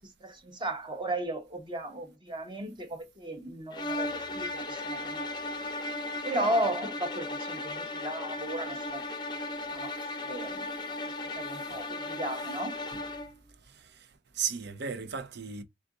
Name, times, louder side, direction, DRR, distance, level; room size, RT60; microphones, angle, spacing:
voice 1, 0.0-5.3 6.2-9.0 9.3-9.9 10.2-11.0 11.2-12.8, right 1 dB, 25° right, 0.8 m, -35 dB
sound 1, 3.7-13.4, left 2 dB, 25° left, 0.6 m, -36 dB
voice 2, 13.6-15.6, right 7 dB, 60° right, 0.6 m, -36 dB
3.7 x 2.5 x 3.6 m
head